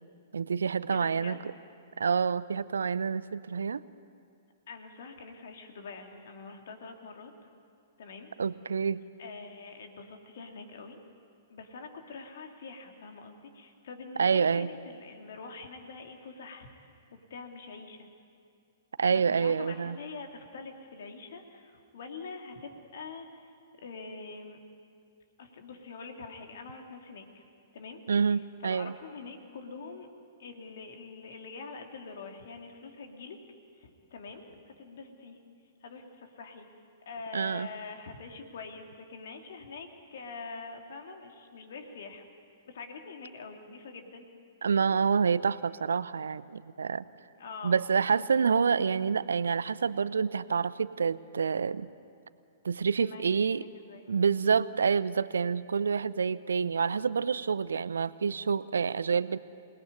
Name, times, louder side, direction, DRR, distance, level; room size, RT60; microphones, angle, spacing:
voice 1, 0.3-1.4 2.0-3.8 8.4-9.0 14.2-14.7 19.0-20.0 28.1-28.9 37.3-37.7 44.6-47.0 47.6-51.9 52.6-53.6 54.1-59.4, right 6 dB, 70° right, 17 dB, 0.7 m, -27 dB
voice 2, 0.9-1.5 4.7-7.3 8.0-8.3 9.2-11.0 11.5-16.7 17.1-18.1 19.1-23.5 23.8-24.6 25.4-27.4 27.7-28.0 28.3-30.1 30.4-33.4 33.8-35.4 35.8-36.7 37.0-42.2 42.7-44.3 47.4-47.8 53.0-54.5, left 4 dB, 55° left, 4 dB, 2.8 m, -45 dB
27.5 x 19.0 x 9.7 m, 2.4 s
figure-of-eight pair, 110°, 0 cm